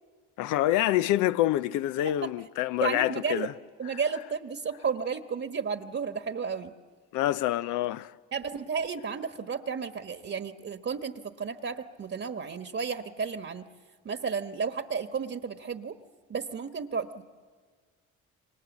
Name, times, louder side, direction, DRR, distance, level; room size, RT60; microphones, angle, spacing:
voice 1, 0.4-3.5 7.1-8.1, left 14 dB, 80° left, 0.7 m, -26 dB
voice 2, 2.8-3.5 3.8-6.7 8.3-13.7 14.0-16.0 16.3-17.2, right 6 dB, 45° right, 1.4 m, -33 dB
28.5 x 24.5 x 7.3 m
supercardioid pair, 55°, 30 cm